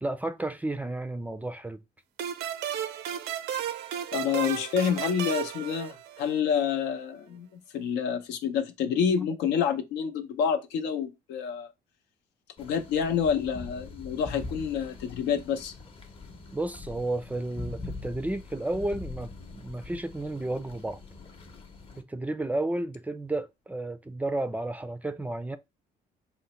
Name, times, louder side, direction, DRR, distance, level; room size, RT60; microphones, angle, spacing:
voice 1, 0.0-1.8 16.5-21.0 22.0-25.6, right 2 dB, 10° right, 0.3 m, -32 dB
sound 1, 2.2-6.5, right 9 dB, 80° right, 0.5 m, -34 dB
voice 2, 4.1-11.7 12.6-15.7, left 7 dB, 85° left, 0.6 m, -28 dB
sound 2, 12.6-22.0, left 3 dB, 35° left, 0.7 m, -43 dB
3.8 x 2.1 x 4.2 m
cardioid pair, 110°, 17 cm